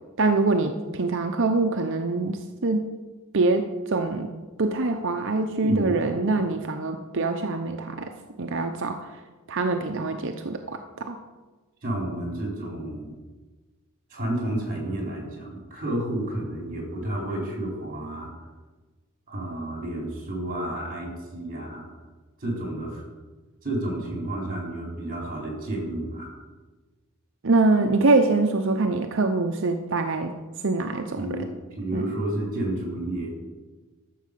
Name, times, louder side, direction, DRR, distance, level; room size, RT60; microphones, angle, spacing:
voice 1, 0.2-2.8 3.3-4.3 4.6-8.1 8.4-9.1 9.5-11.2 27.4-30.3 30.6-31.4 31.9-32.0, right 3 dB, 60° right, 5 dB, 0.7 m, -24 dB
voice 2, 5.6-6.0 11.8-13.1 14.1-18.3 19.3-21.9 22.4-23.0 23.6-26.3 31.2-33.3, right 1 dB, 40° right, -1 dB, 4.2 m, -31 dB
13.5 x 7.4 x 6.8 m, 1.3 s
head